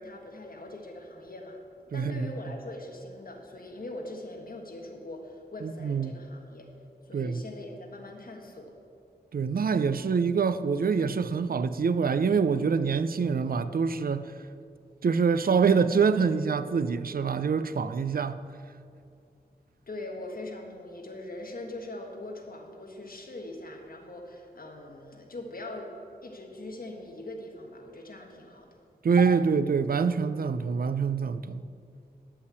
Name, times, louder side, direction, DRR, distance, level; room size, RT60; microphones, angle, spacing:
voice 1, 0.0-1.6 1.9-6.7 7.0-8.7 19.9-25.9 26.2-28.7, left 2 dB, 60° left, 1.4 m, -42 dB
voice 2, 1.9-2.3 5.6-6.1 7.1-7.4 9.3-14.3 15.0-18.4 29.0-31.6, right 5 dB, 60° right, 0.4 m, -25 dB
9.9 x 5.6 x 8.1 m
wide cardioid pair, 95°, 17 cm